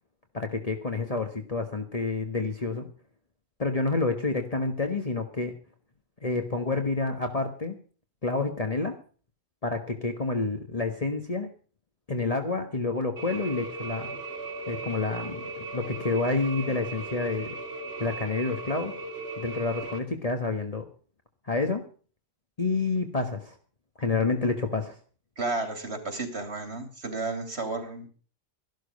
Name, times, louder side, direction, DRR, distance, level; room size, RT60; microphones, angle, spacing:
voice 1, 0.3-2.9 3.6-5.5 6.2-7.8 8.2-8.9 9.6-11.5 12.1-14.2 14.7-17.6 18.0-18.9 19.4-20.9 21.4-21.8 22.6-23.5 24.0-25.0, left 3 dB, 35° left, 5 dB, 1.5 m, -29 dB
sound 1, 13.2-20.0, right 3 dB, 65° right, 3.2 m, -37 dB
voice 2, 25.4-28.1, right 3 dB, 80° right, 6 dB, 3.5 m, -32 dB
14.0 x 12.0 x 5.2 m, 0.40 s
omnidirectional pair, 1.1 m